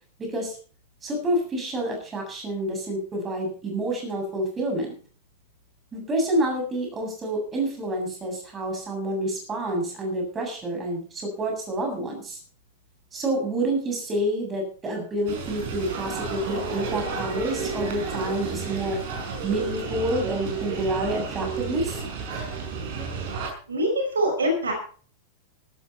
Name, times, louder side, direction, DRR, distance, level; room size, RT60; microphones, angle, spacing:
voice 1, 0.2-0.5 1.0-4.9 5.9-12.4 13.1-19.0 19.4-22.0, right 1 dB, 20° right, 1 dB, 7.6 m, -28 dB
sound 1, 15.3-23.5, right 5 dB, 50° right, 5.4 m, -31 dB
voice 2, 23.7-24.7, equal, 70° right, 3 dB, 5.1 m, -24 dB
14.5 x 13.5 x 4.5 m, 0.41 s
figure-of-eight pair, 90°, 0 cm